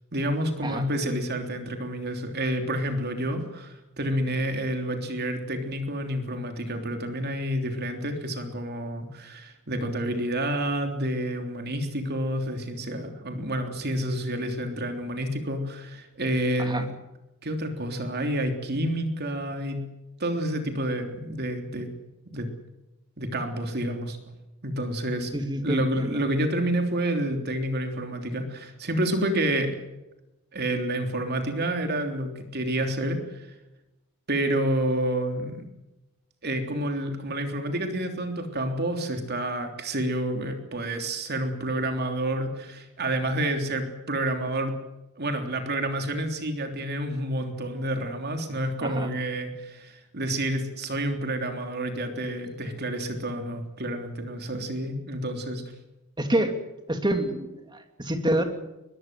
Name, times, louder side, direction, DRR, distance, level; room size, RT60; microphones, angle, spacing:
voice 1, 0.1-16.9 17.4-19.8 20.2-21.9 22.3-22.5 23.2-24.2 24.6-25.3 25.6-29.8 30.5-33.5 34.3-35.7 36.4-44.8 45.2-55.6, right 1 dB, 45° right, 5 dB, 3.4 m, -29 dB
voice 2, 25.3-26.2 48.8-49.1 56.2-56.5 56.9-58.4, right 1 dB, 20° right, 5 dB, 2.9 m, -27 dB
22.5 x 21.5 x 7.7 m, 0.97 s
head